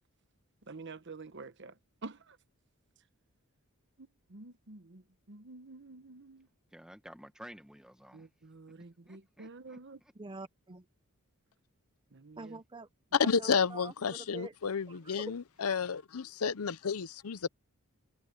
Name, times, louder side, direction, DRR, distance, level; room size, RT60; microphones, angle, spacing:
voice 1, 0.6-2.4 4.0-6.5 8.1-10.0 12.1-12.6 13.2-13.4 14.1-14.2, right 3 dB, 55° right, 1.0 m, -49 dB
voice 2, 6.7-8.3 9.1-10.1, equal, 5° right, 1.7 m, -52 dB
voice 3, 10.2-10.9 12.4-12.9 13.2-14.5 14.9-15.2, right 3 dB, 20° right, 0.7 m, -46 dB
voice 4, 13.1-17.5, left 6 dB, 75° left, 0.7 m, -31 dB
head